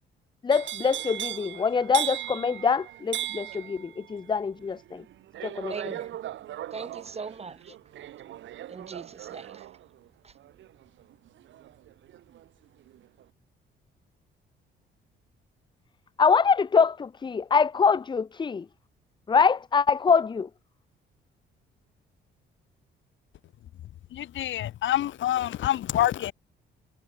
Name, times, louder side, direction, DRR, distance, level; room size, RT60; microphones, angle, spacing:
voice 1, 0.4-5.0 5.4-5.7 16.2-18.6 19.3-20.5, left 5 dB, 25° left, 0.5 m, -24 dB
sound 1, 0.5-12.5 12.8-13.2, right 13 dB, 70° right, 1.0 m, -38 dB
voice 2, 5.7-6.2 6.7-7.8 8.7-9.7 10.2-10.3, right 5 dB, 30° right, 1.7 m, -40 dB
voice 3, 24.1-26.3, left 12 dB, 70° left, 1.4 m, -26 dB
cardioid pair, 90°, 20 cm